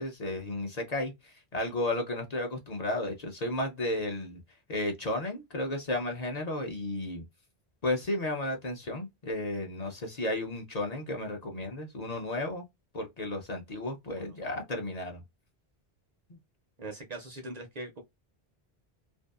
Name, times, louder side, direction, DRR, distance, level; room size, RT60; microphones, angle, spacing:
voice 1, 0.0-4.4 4.7-7.2 7.8-12.6 12.9-15.2, left 1 dB, 45° left, 0.6 m, -33 dB
voice 2, 16.8-18.0, right 2 dB, 50° right, 0.6 m, -41 dB
2.6 x 2.2 x 2.3 m
omnidirectional pair, 1.0 m